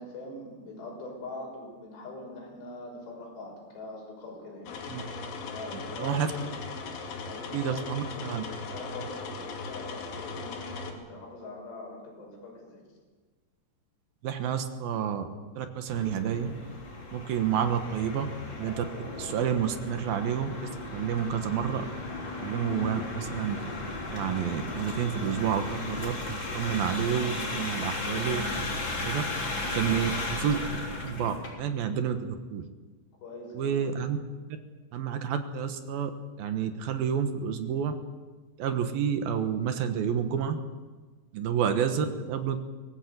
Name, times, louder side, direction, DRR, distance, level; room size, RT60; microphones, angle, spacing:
voice 1, 0.0-4.7 5.5-6.5 7.2-12.8 21.2-21.6 30.1-30.2 33.2-34.1, left 2 dB, 65° left, -1 dB, 8.6 m, -43 dB
sound 1, 4.7-10.9, left 4 dB, 85° left, 4.9 m, -38 dB
voice 2, 7.5-8.4 14.2-15.3 15.6-16.5 17.1-18.3 18.6-18.8 19.2-20.5 20.9-21.9 22.4-23.6 24.1-28.4 29.1-29.2 29.6-30.6 31.0-32.6 33.5-34.2 34.9-36.1 36.4-37.9 38.6-40.6 41.3-42.6, right 8 dB, 65° right, 8 dB, 2.7 m, -29 dB
sound 2, 15.9-31.5, left 2 dB, 25° left, 3.7 m, -35 dB
23.5 x 18.5 x 8.2 m, 1.4 s
omnidirectional pair, 5.2 m